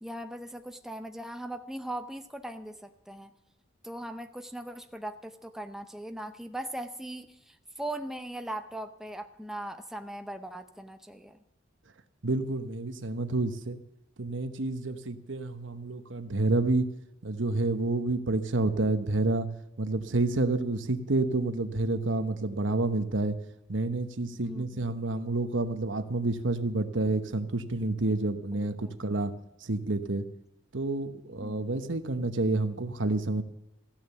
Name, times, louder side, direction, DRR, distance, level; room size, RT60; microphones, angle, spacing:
voice 1, 0.0-3.3 3.8-11.4 24.4-24.9 28.5-28.9 31.4-31.9, right 1 dB, ahead, 6 dB, 0.6 m, -39 dB
voice 2, 12.2-13.8 14.2-16.9 17.2-19.5 19.8-23.4 23.7-29.3 29.6-30.2 30.7-33.4, right 2 dB, 70° right, 10 dB, 1.0 m, -29 dB
14.5 x 10.0 x 6.9 m, 0.88 s
head